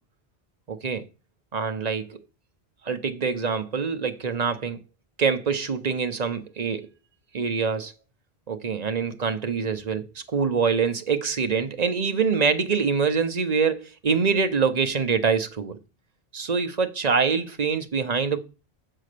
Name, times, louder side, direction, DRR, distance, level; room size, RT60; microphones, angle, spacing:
voice 1, 0.7-1.0 1.5-2.2 2.9-4.8 5.2-6.9 7.3-7.9 8.5-10.0 10.3-15.8 16.3-18.4, right 5 dB, 40° right, 0.8 m, -25 dB
7.7 x 4.1 x 6.7 m
omnidirectional pair, 1.1 m